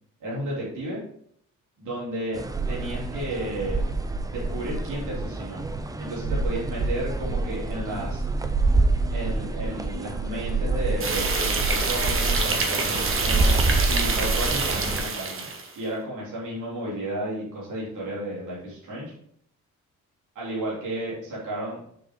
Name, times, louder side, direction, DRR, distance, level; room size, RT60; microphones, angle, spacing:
voice 1, 0.2-1.0 1.8-3.8 4.3-5.6 6.0-8.2 9.1-15.5 15.7-19.1 20.3-21.8, right 1 dB, 75° right, -7 dB, 3.3 m, -33 dB
sound 1, 2.3-15.0, right 3 dB, 10° right, 0.5 m, -27 dB
sound 2, 11.0-15.7, right 4 dB, 45° right, 1.3 m, -26 dB
7.1 x 6.2 x 3.8 m, 0.66 s
cardioid pair, 145°, 31 cm